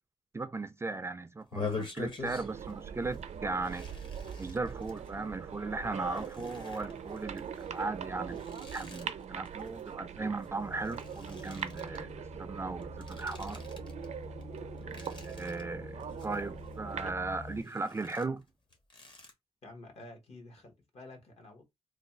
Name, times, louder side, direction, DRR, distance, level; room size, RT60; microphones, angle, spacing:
voice 1, 0.3-3.9 4.4-8.4 8.7-12.1 12.5-13.6 14.8-18.4, right 3 dB, 20° right, 0.3 m, -37 dB
sound 1, 1.4-2.7 3.0-3.2 3.6-5.1 5.7-10.5 10.7-12.0 12.8-14.1 14.4-15.6 16.0-16.7 17.1-19.3, left 4 dB, 45° left, 1.1 m, -45 dB
sound 2, 2.2-17.1, right 8 dB, 80° right, 0.5 m, -42 dB
sound 3, 10.6-17.6, left 2 dB, 20° left, 0.6 m, -47 dB
voice 2, 19.6-21.6, left 2 dB, 65° left, 1.5 m, -50 dB
3.2 x 2.3 x 4.2 m
wide cardioid pair, 140°, 11 cm